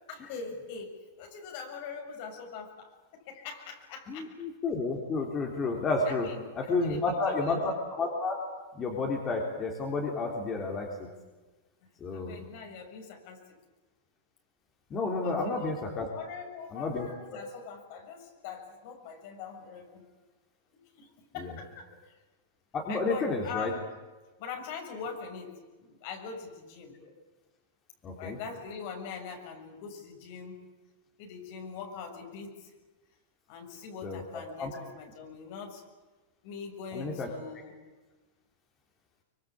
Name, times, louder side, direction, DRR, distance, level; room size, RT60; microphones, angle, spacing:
voice 1, 0.1-0.9 1.2-4.3 6.1-7.6 12.1-13.5 15.2-15.8 16.1-20.0 20.7-21.9 22.9-23.9 24.4-26.9 28.2-30.6 31.2-32.7 33.5-35.8 36.4-37.7, left 6 dB, 55° left, 3 dB, 6.8 m, -42 dB
voice 2, 4.1-6.3 6.6-8.4 8.7-11.1 12.0-12.4 14.9-16.1 16.7-17.1 21.4-21.5 22.7-23.7 28.0-28.4 34.0-34.2 34.6-34.7 36.9-37.3, left 3 dB, 25° left, 0 dB, 3.8 m, -31 dB
24.5 x 23.0 x 8.6 m, 1.2 s
supercardioid pair, 140°, 0 cm